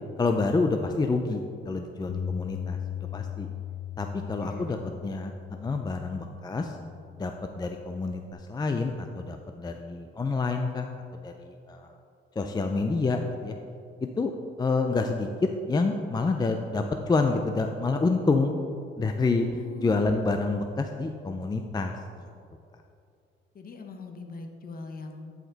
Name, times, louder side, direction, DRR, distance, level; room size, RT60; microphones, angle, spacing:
voice 1, 0.2-2.8 3.1-3.5 4.0-4.8 5.0-5.3 5.6-6.8 7.2-11.9 12.4-13.5 14.0-14.3 14.6-18.5 19.0-19.5 19.8-21.9, left 3 dB, 20° left, 5 dB, 0.4 m, -28 dB
Bass guitar, 2.1-8.3, left 9 dB, 75° left, 0.6 m, -38 dB
voice 2, 4.2-4.8 19.4-20.2 23.5-25.3, left 3 dB, 45° left, 4 dB, 1.0 m, -42 dB
11.0 x 5.1 x 4.0 m, 2.4 s
cardioid pair, 90°, 20 cm